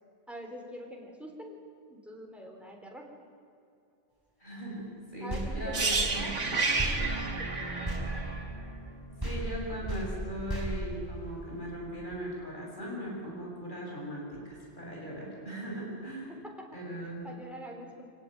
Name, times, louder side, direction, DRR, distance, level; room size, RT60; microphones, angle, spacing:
voice 1, 0.3-1.6 1.9-3.1 5.2-7.6 16.3-18.1, equal, ahead, 1 dB, 3.9 m, -45 dB
voice 2, 4.4-4.8 5.1-6.3 9.2-16.3 16.7-17.2, right 1 dB, 40° left, -3 dB, 7.6 m, -39 dB
sound 1, 5.3-8.9 9.2-11.7, right 1 dB, 20° right, 5.1 m, -36 dB
sound 2, 5.7-9.6 9.9-10.1, right 3 dB, 80° right, 2.4 m, -31 dB
26.0 x 17.5 x 9.3 m, 2.6 s
omnidirectional pair, 1.2 m